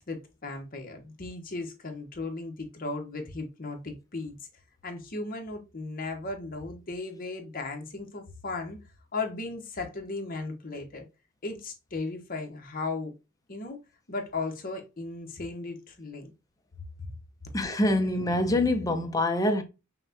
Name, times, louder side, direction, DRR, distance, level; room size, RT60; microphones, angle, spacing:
voice 1, 0.0-4.4 4.8-8.8 9.1-11.1 11.4-13.1 13.5-13.8 14.1-16.3, left 3 dB, 45° left, 0.9 m, -36 dB
voice 2, 17.5-19.6, left 1 dB, 20° left, 0.5 m, -25 dB
5.6 x 2.1 x 2.8 m
head